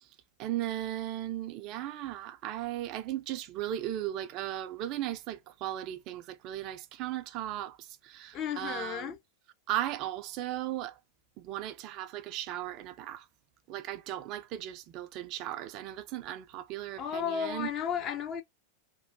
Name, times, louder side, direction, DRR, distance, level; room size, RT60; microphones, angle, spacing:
voice 1, 0.4-7.8 8.0-9.1 9.7-11.0 11.4-13.2 13.7-17.7, right 13 dB, 40° right, 0.4 m, -36 dB
voice 2, 8.3-9.2 17.0-18.4, left 8 dB, 30° left, 0.6 m, -33 dB
3.0 x 2.2 x 2.6 m
figure-of-eight pair, 90°, 0 cm